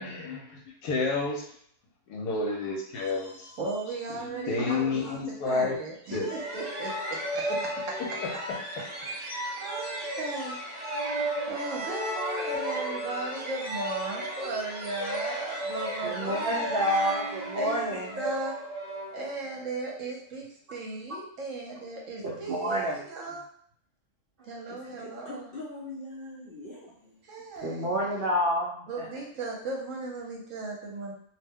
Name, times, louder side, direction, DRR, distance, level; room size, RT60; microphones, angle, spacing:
voice 1, 0.0-1.4 2.1-3.5 4.5-5.8 6.1-6.3 7.5-7.6, left 3 dB, 85° left, 0 dB, 1.2 m, -30 dB
voice 2, 2.9-3.8 6.0-6.6 24.7-27.2, left 2 dB, 55° left, -6 dB, 0.6 m, -44 dB
voice 3, 3.6-5.2 5.4-7.4 8.1-8.2 9.1-10.6 11.5-17.2 17.6-17.8 18.2-18.6 19.1-23.5 24.4-25.5 27.2-28.1 28.9-31.1, right 3 dB, 60° right, -2 dB, 1.0 m, -36 dB
sound 1, 6.2-19.7, right 1 dB, 25° right, 1.0 m, -34 dB
voice 4, 16.0-18.1 22.2-23.0 27.6-29.1, equal, 80° right, -4 dB, 0.5 m, -29 dB
2.7 x 2.1 x 3.5 m, 0.62 s
omnidirectional pair, 1.7 m